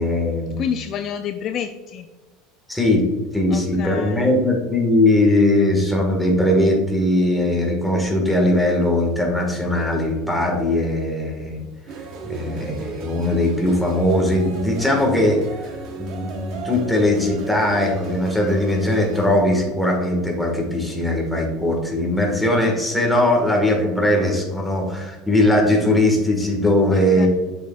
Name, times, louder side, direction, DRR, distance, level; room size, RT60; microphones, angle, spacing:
voice 1, 0.0-0.6 2.7-3.0 3.3-11.6 12.3-15.4 15.9-27.3, left 1 dB, ahead, 0 dB, 1.4 m, -19 dB
voice 2, 0.6-2.1 3.5-4.3 26.9-27.3, left 8 dB, 40° left, 7 dB, 0.4 m, -29 dB
sound 1, 11.9-19.3, right 4 dB, 55° right, 1.0 m, -36 dB
7.0 x 6.3 x 2.3 m, 1.3 s
supercardioid pair, 145°, 0 cm